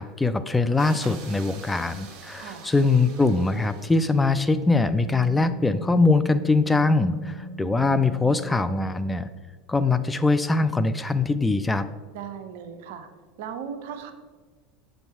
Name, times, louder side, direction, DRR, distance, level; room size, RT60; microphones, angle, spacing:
voice 1, 0.0-9.3 9.7-11.9, left 3 dB, 15° left, 12 dB, 0.3 m, -22 dB
sound 1, 0.8-4.8, right 5 dB, 50° right, 1.1 m, -46 dB
voice 2, 2.4-2.7 12.1-13.1 13.4-14.1, right 7 dB, 65° right, 8 dB, 0.7 m, -37 dB
Wind instrument woodwind instrument, 4.8-9.2, right 1 dB, 85° left, 1.6 m, -40 dB
6.5 x 4.4 x 4.3 m, 1.4 s
hypercardioid pair, 80°, 0 cm